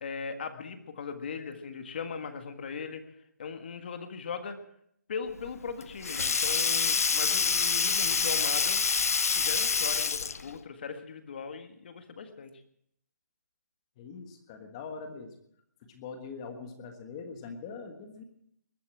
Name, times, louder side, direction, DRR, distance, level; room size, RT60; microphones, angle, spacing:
voice 1, 0.0-3.0 3.4-4.6 5.1-8.8 9.4-12.6, left 5 dB, 35° left, 8 dB, 1.6 m, -39 dB
Sink (filling or washing), 5.4-10.5, left 5 dB, 55° left, 0.8 m, -27 dB
voice 2, 14.0-15.3 15.9-18.2, left 5 dB, 15° left, 6 dB, 1.5 m, -42 dB
21.0 x 8.4 x 7.7 m, 0.72 s
hypercardioid pair, 175°, 9 cm